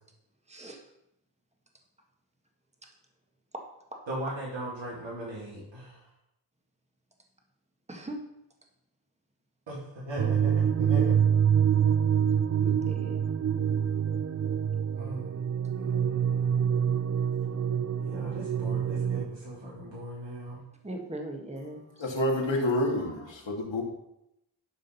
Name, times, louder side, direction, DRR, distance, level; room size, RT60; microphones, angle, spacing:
voice 1, 0.5-0.8 2.8-2.9 3.5-3.6 3.9-4.0 7.9-8.2 12.6-13.3 20.8-22.0, right 1 dB, 15° right, 2 dB, 1.7 m, -40 dB
voice 2, 4.1-6.1 9.7-11.2 15.0-15.4 15.8-16.6 18.0-20.6, right 1 dB, 80° right, -8 dB, 3.8 m, -39 dB
sound 1, 10.2-19.2, right 8 dB, 35° right, 0.4 m, -26 dB
voice 3, 22.0-23.8, left 1 dB, 80° left, 0 dB, 2.3 m, -28 dB
12.0 x 5.2 x 5.6 m, 0.82 s
wide cardioid pair, 70°, 44 cm